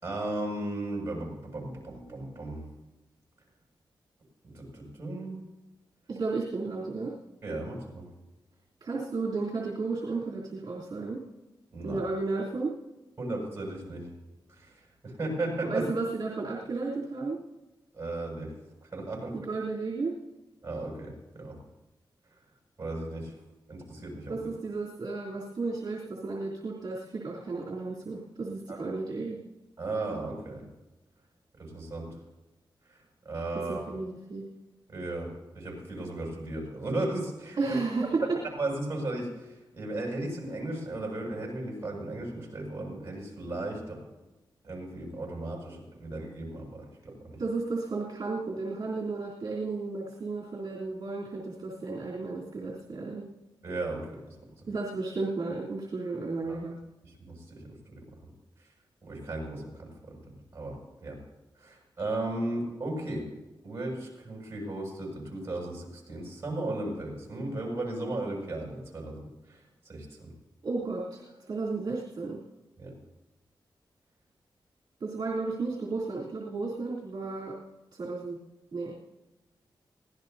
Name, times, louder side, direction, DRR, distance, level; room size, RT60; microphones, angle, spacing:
voice 1, 0.0-2.7 4.4-5.4 7.4-8.1 11.7-12.0 13.2-14.1 14.5-15.9 17.9-18.5 18.8-19.4 20.6-21.6 22.8-23.3 23.7-24.4 28.7-28.8 29.8-30.7 31.6-32.2 32.9-33.0 33.2-33.8 34.9-37.8 38.5-44.0 44.6-47.4 53.6-54.3 56.5-56.6 57.0-58.2 59.0-60.2 60.5-61.2 61.6-63.3 63.6-70.3 72.8-72.9, right 2 dB, 30° right, -2 dB, 7.1 m, -36 dB
voice 2, 6.1-7.2 8.8-11.2 11.8-12.8 15.6-17.4 19.3-20.2 24.3-29.4 33.5-34.5 37.6-38.4 47.4-53.3 54.7-56.8 70.6-72.4 75.0-77.6 77.9-78.4 78.7-78.9, right 3 dB, 55° right, -5 dB, 3.2 m, -33 dB
24.0 x 17.5 x 2.8 m, 1.1 s
wide cardioid pair, 160°, 8 cm